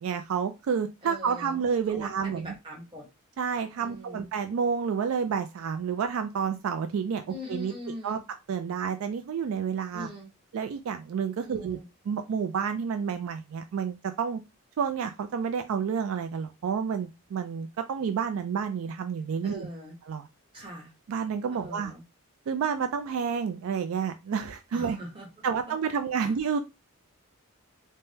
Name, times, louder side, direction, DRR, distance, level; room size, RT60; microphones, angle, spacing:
voice 1, 0.0-2.5 3.4-7.7 8.0-8.2 8.5-10.1 10.5-11.8 12.1-14.4 14.8-19.7 20.1-20.3 21.1-21.9 22.5-25.0 25.4-26.6, right 6 dB, 70° right, 7 dB, 0.3 m, -29 dB
voice 2, 1.0-1.6 1.9-3.1 3.8-4.3 7.3-8.2 9.9-10.3 11.4-11.9 19.4-19.9 20.5-20.9 21.5-22.0 24.7-25.3 26.2-26.4, left 1 dB, 25° right, -2 dB, 1.1 m, -42 dB
3.3 x 2.2 x 2.7 m, 0.24 s
head